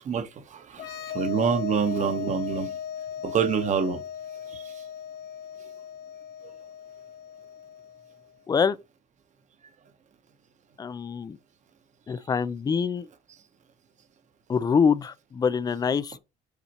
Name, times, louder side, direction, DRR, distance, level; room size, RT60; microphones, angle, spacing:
voice 1, 0.0-2.7 3.2-4.0 4.5-4.8 6.4-6.5, right 7 dB, 45° right, 1.0 m, -27 dB
sound 1, 0.7-8.2, left 8 dB, 70° left, 1.6 m, -37 dB
voice 2, 10.8-11.4 12.1-13.1 14.5-16.2, left 6 dB, 25° left, 0.4 m, -25 dB
8.2 x 4.2 x 2.9 m
cardioid pair, 110°, 17 cm